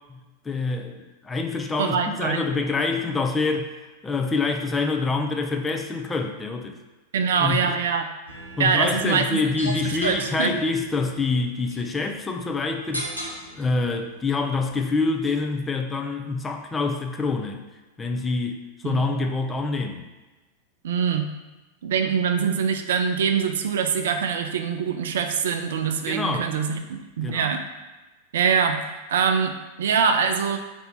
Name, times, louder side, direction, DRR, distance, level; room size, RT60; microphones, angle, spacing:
voice 1, 0.4-3.7 4.0-6.8 7.4-7.8 8.6-13.1 13.5-17.6 18.0-20.1 26.1-26.5 27.2-27.5, left 3 dB, 15° left, 4 dB, 0.4 m, -26 dB
voice 2, 1.8-2.5 7.1-8.1 8.6-9.3 9.6-10.5 18.8-19.0 20.8-21.3 21.8-27.6 28.3-28.8 29.1-30.6, right 6 dB, 60° right, 7 dB, 0.3 m, -24 dB
sound 1, 8.3-15.5, right 1 dB, 85° right, 0.9 m, -39 dB
4.4 x 2.6 x 4.1 m, 1.2 s
figure-of-eight pair, 90°, 0 cm